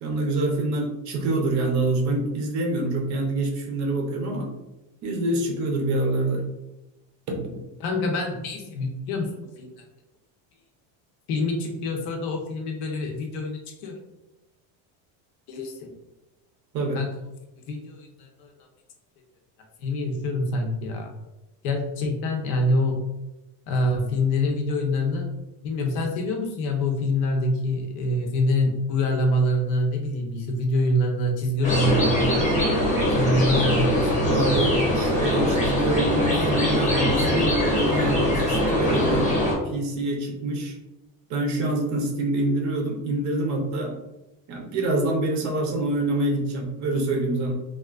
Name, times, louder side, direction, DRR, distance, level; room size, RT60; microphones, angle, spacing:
voice 1, 0.0-4.5 5.0-6.4 7.3-7.6 16.7-17.0 34.3-39.3 39.6-40.7 41.3-43.9 44.5-47.5, right 2 dB, 45° right, 2 dB, 0.6 m, -26 dB
voice 2, 7.8-9.7 11.3-14.0 15.5-15.9 16.9-17.1 17.7-18.5 19.8-21.1 21.6-23.0 23.7-25.3 25.6-32.4 33.1-34.6, left 1 dB, 60° left, 2 dB, 0.8 m, -25 dB
sound 1, 31.6-39.5, left 1 dB, 15° left, 0.9 m, -22 dB
3.5 x 2.4 x 2.3 m, 0.98 s
cardioid pair, 160°, 41 cm